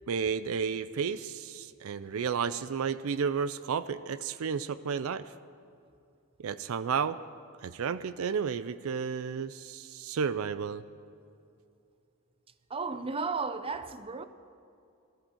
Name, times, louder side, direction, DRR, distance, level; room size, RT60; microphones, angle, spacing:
voice 1, 0.1-5.3 6.4-7.2 7.6-10.8, right 6 dB, 75° right, 0.4 m, -32 dB
voice 2, 12.7-14.2, right 4 dB, 25° right, 0.6 m, -34 dB
20.0 x 13.5 x 4.4 m
head